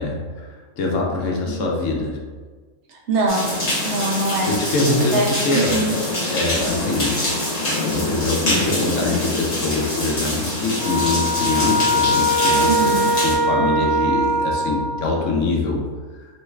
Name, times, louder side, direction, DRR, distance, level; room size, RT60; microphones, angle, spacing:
voice 1, 0.0-2.2 4.5-7.5 7.8-15.9, left 3 dB, 75° left, -1 dB, 1.0 m, -24 dB
voice 2, 3.1-3.6 3.8-4.5 5.1-6.0 12.6-13.1, right 2 dB, 65° right, -1 dB, 0.8 m, -23 dB
sound 1, 3.3-13.4, left 1 dB, 60° left, 1.2 m, -24 dB
sound 2, 10.8-15.2, equal, 25° right, 1.1 m, -21 dB
3.1 x 2.2 x 3.1 m, 1.4 s
omnidirectional pair, 1.4 m